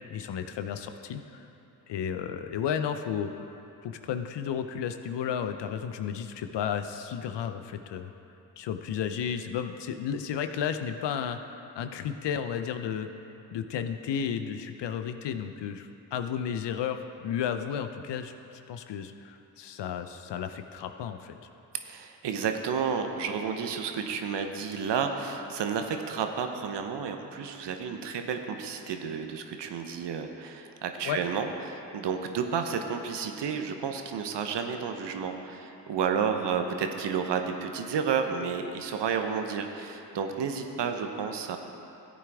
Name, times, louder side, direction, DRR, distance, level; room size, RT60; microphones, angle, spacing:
voice 1, 0.1-1.5 1.9-3.5 3.8-8.1 8.6-13.1 13.5-21.3 31.0-31.2, left 8 dB, 60° left, 8 dB, 0.8 m, -33 dB
voice 2, 21.8-41.6, right 6 dB, 60° right, 5 dB, 1.0 m, -31 dB
14.5 x 8.5 x 3.6 m, 2.9 s
hypercardioid pair, 45°, 47 cm